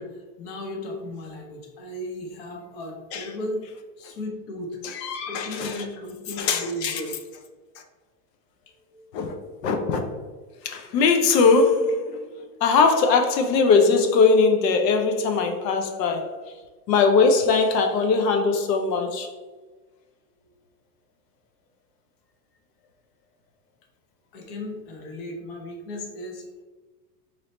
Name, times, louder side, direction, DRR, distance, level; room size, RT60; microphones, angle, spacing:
voice 1, 0.0-3.7 4.0-4.8 5.3-7.2 8.7-9.0 20.4-20.5 24.3-26.5, left 1 dB, 40° left, 0.6 m, -35 dB
voice 2, 4.8-5.8 6.4-7.0 9.1-9.4 9.6-10.1 10.6-12.3 12.6-16.3 16.9-19.3, left 4 dB, 75° left, 0.7 m, -20 dB
3.2 x 2.7 x 4.0 m
supercardioid pair, 175°, 50 cm